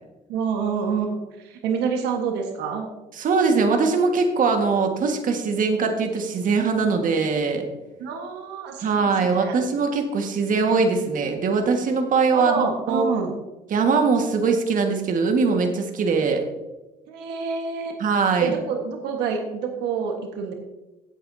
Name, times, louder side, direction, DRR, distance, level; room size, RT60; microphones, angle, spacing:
voice 1, 0.3-2.9 8.0-9.6 12.3-13.4 17.1-17.9 18.4-20.5, right 6 dB, 90° right, 3 dB, 1.5 m, -27 dB
voice 2, 3.2-7.6 8.8-13.1 13.7-16.4 18.0-18.5, right 4 dB, 50° right, 4 dB, 1.7 m, -21 dB
16.0 x 8.2 x 2.8 m, 1.1 s
cardioid pair, 110°, 17 cm